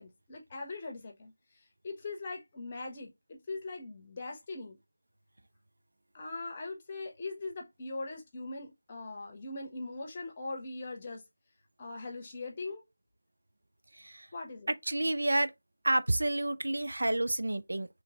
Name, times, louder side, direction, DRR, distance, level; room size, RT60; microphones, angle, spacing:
voice 1, 0.0-1.3 1.8-4.8 6.1-11.2 11.8-12.8 14.3-14.7, left 3 dB, 25° left, 1.0 m, -41 dB
voice 2, 14.9-15.5 15.8-17.9, right 1 dB, 70° right, 0.5 m, -29 dB
3.2 x 3.1 x 3.7 m
figure-of-eight pair, 170°, 0 cm